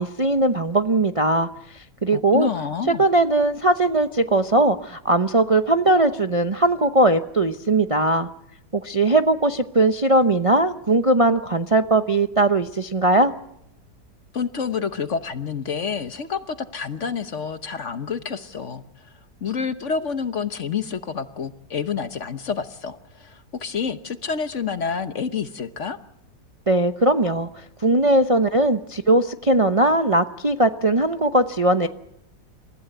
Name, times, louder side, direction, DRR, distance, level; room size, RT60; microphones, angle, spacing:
voice 1, 0.0-1.5 1.7-2.5 3.0-8.3 8.7-13.3 26.7-31.9, right 2 dB, 30° right, 7 dB, 0.6 m, -19 dB
voice 2, 2.1-3.0 14.3-18.8 19.4-26.0, left 6 dB, 50° left, 10 dB, 1.2 m, -28 dB
28.5 x 15.5 x 7.9 m, 0.81 s
omnidirectional pair, 1.8 m